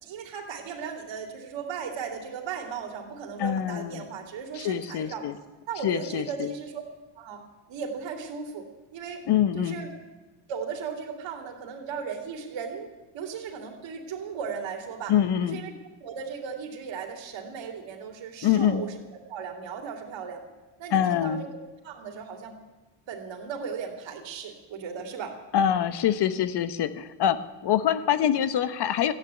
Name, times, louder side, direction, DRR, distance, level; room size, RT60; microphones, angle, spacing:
voice 1, 0.0-5.3 5.7-6.8 7.2-7.4 7.7-8.7 8.9-9.2 9.5-9.9 10.5-15.1 15.4-15.7 16.0-18.9 19.3-20.4 20.8-22.5 23.1-25.4, right 6 dB, 65° right, 4 dB, 2.7 m, -36 dB
voice 2, 3.4-4.0 4.5-5.3 5.8-6.5 9.3-9.8 15.1-15.6 18.4-18.8 20.9-21.4 25.5-29.1, left 10 dB, 55° left, 14 dB, 1.0 m, -25 dB
13.5 x 9.4 x 9.4 m, 1.2 s
supercardioid pair, 85°, 49 cm